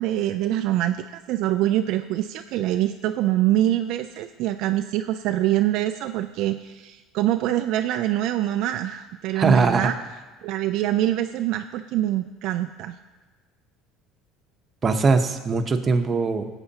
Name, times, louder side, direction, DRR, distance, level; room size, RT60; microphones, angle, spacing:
voice 1, 0.0-9.9 10.4-13.0, right 13 dB, 65° right, 7 dB, 0.3 m, -24 dB
voice 2, 9.3-9.9 14.8-16.5, right 4 dB, 30° right, 6 dB, 0.9 m, -21 dB
16.0 x 7.9 x 2.9 m, 1.2 s
supercardioid pair, 95°, 0 cm